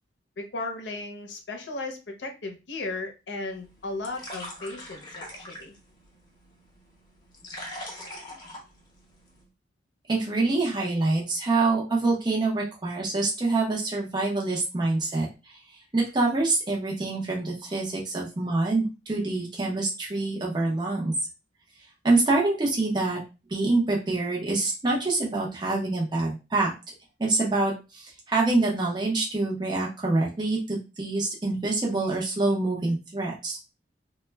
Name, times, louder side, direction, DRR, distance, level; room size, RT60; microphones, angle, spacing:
voice 1, 0.4-5.7, left 2 dB, 85° left, 4 dB, 0.6 m, -35 dB
sound 1, 3.5-9.4, left 1 dB, 25° left, 0.8 m, -43 dB
voice 2, 10.1-15.6 15.9-21.1 22.0-23.2 23.5-26.7 27.2-33.6, right 2 dB, 25° right, -3 dB, 0.6 m, -26 dB
2.2 x 2.1 x 3.2 m, 0.28 s
head